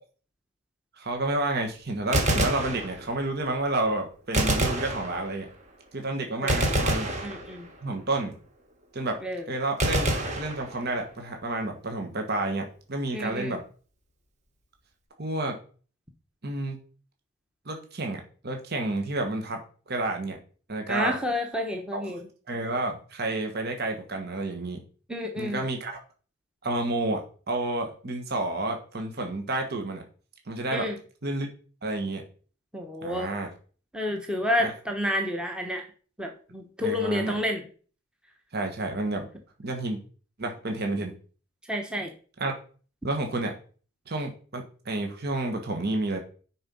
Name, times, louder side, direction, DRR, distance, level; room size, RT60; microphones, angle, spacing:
voice 1, 1.0-5.5 5.9-7.1 7.8-8.3 8.9-9.2 9.5-10.1 10.4-13.6 15.2-15.6 16.4-16.8 17.7-20.4 20.7-21.2 21.9-22.1 22.5-24.8 25.4-26.0 26.6-30.0 30.5-30.9 31.2-31.5 31.8-32.2 33.0-33.5 34.6-34.7 36.8-37.4 38.5-39.2 39.6-40.0 40.4-41.1 42.4-42.5 43.0-43.5 44.1-46.2, right 2 dB, 50° right, 4 dB, 1.3 m, -30 dB
Gunshot gunfire, 2.0-3.3 4.3-5.6 6.5-7.9 9.8-11.1, right 1 dB, 35° right, 1.5 m, -27 dB
voice 2, 6.4-6.8 7.2-7.7 9.2-9.4 13.1-13.6 20.9-22.2 25.1-25.7 30.7-31.0 32.7-33.3 33.9-35.8 36.2-37.6 41.7-42.1, left 1 dB, 5° right, 3 dB, 1.0 m, -30 dB
9.8 x 4.4 x 5.4 m, 0.41 s
head